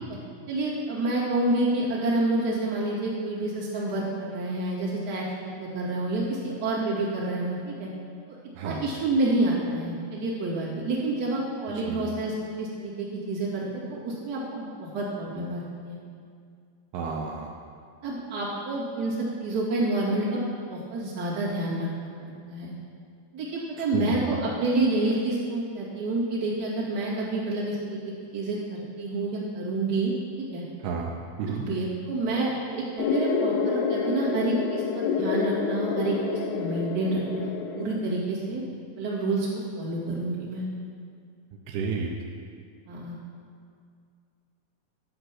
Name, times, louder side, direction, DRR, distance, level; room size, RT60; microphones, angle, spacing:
voice 1, 0.5-7.9 8.6-16.0 18.0-20.4 20.7-22.7 23.3-28.0 28.3-30.6 31.6-38.6 39.0-40.6 42.9-43.2, right 2 dB, 35° right, -6 dB, 2.0 m, -28 dB
voice 2, 11.8-12.1 16.9-17.5 23.9-24.3 30.8-31.1 31.4-31.6 41.7-42.1, right 5 dB, 80° right, 1 dB, 2.5 m, -31 dB
sound 1, 33.0-38.0, left 6 dB, 85° left, 2.6 m, -28 dB
11.0 x 7.9 x 5.9 m, 2.2 s
omnidirectional pair, 4.8 m